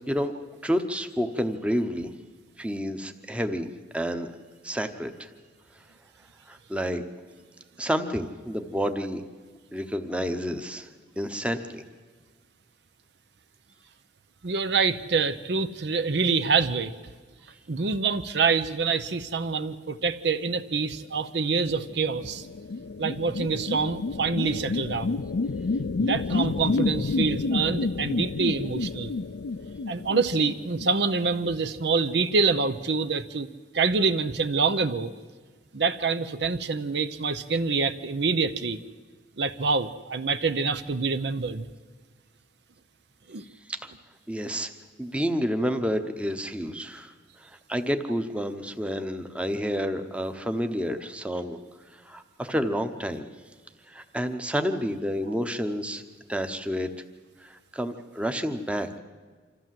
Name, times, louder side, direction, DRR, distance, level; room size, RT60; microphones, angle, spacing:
voice 1, 0.6-2.1 2.6-3.7 3.9-4.3 4.6-5.3 6.5-7.0 7.8-9.2 9.7-10.9 11.2-11.8 43.7-43.9 44.3-44.7 45.0-51.6 51.9-53.3 53.9-56.0 56.3-57.0 57.4-59.0, equal, 5° right, 7 dB, 0.9 m, -29 dB
voice 2, 14.4-16.9 17.7-22.5 23.0-25.2 26.0-29.1 29.9-33.5 33.7-35.1 35.7-38.8 39.4-41.7 43.3-43.4, right 4 dB, 65° right, 11 dB, 0.7 m, -26 dB
sound 1, 21.6-31.3, left 3 dB, 70° left, 0.5 m, -30 dB
26.0 x 14.0 x 7.7 m, 1.5 s
head